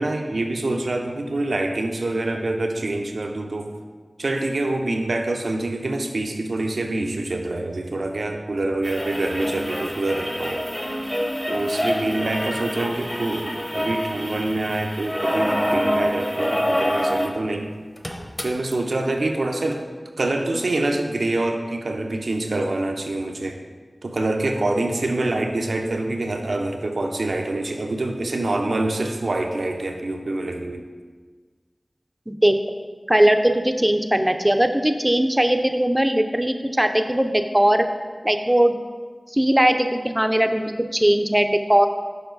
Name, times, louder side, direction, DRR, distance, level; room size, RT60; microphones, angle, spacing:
voice 1, 0.0-3.7 4.2-10.7 11.5-17.7 18.4-19.8 20.2-23.6 24.0-30.9, right 2 dB, 90° right, 3 dB, 0.6 m, -26 dB
sound 1, 8.8-17.4 17.7-17.8 18.0-18.7 19.7-19.8, equal, 15° left, 0.8 m, -26 dB
voice 2, 32.3-32.6 33.1-37.8 38.2-38.8 39.3-41.9, right 1 dB, 15° right, 7 dB, 0.5 m, -19 dB
6.9 x 4.9 x 3.9 m, 1.5 s
wide cardioid pair, 45°, 0 cm